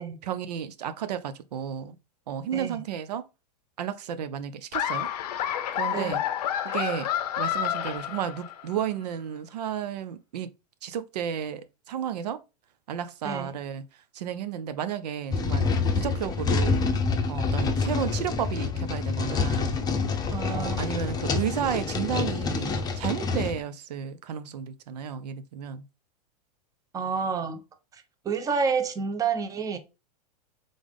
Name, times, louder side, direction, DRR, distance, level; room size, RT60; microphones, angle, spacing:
voice 1, 0.2-2.0 2.3-3.2 3.8-5.1 5.8-6.2 6.7-7.1 7.4-10.5 10.8-12.4 12.9-13.8 14.1-15.7 15.9-16.8 17.3-19.8 20.5-25.8, right 9 dB, 80° right, 0.6 m, -32 dB
Laughter, 4.7-8.8, left 10 dB, 75° left, 0.6 m, -29 dB
voice 2, 13.2-13.6 20.3-20.9 26.9-27.6 27.9-29.8, right 5 dB, 15° right, 0.7 m, -29 dB
sound 1, 15.3-23.6, left 4 dB, 20° left, 0.7 m, -27 dB
3.8 x 3.4 x 3.5 m
hypercardioid pair, 120°, 21 cm